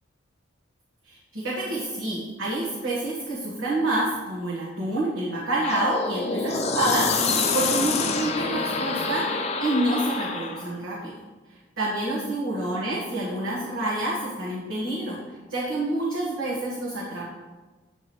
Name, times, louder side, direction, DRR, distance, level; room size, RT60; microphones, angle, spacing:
voice 1, 1.1-11.1 11.8-15.2 15.5-17.3, right 1 dB, 80° right, -7 dB, 1.4 m, -28 dB
sound 1, 5.6-10.7, left 4 dB, 35° left, 0.5 m, -27 dB
8.8 x 4.7 x 3.1 m, 1.3 s
head